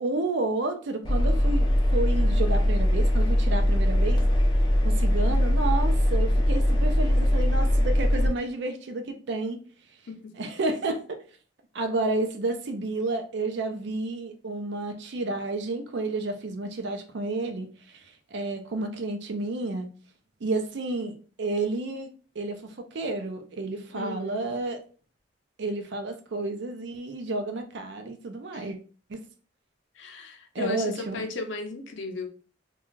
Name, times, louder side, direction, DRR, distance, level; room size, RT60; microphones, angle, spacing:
voice 1, 0.0-4.2 4.8-9.6 10.4-11.2 11.7-18.0 18.3-19.9 20.4-22.1 22.4-24.8 25.6-28.8 29.1-29.2 30.5-31.2, right 2 dB, 65° right, 0.5 m, -31 dB
Engine, 1.0-8.3, equal, 25° left, 0.5 m, -21 dB
voice 2, 23.9-24.5 28.5-28.7 30.0-32.3, left 3 dB, 75° left, 0.5 m, -35 dB
2.4 x 2.3 x 3.0 m
head